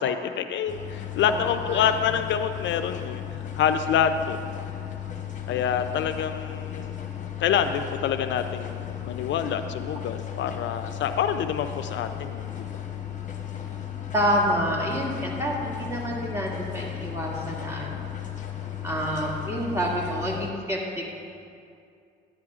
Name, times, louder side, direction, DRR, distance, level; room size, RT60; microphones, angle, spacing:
voice 1, 0.0-4.4 5.5-6.9 7.4-12.7, left 8 dB, 70° left, 9 dB, 0.4 m, -27 dB
sound 1, 0.7-20.5, left 10 dB, 40° left, 0.9 m, -35 dB
voice 2, 1.3-1.9 14.1-18.0 18.8-21.1, equal, 15° right, -3 dB, 2.0 m, -28 dB
11.0 x 10.5 x 2.4 m, 2.4 s
cardioid pair, 90°, 20 cm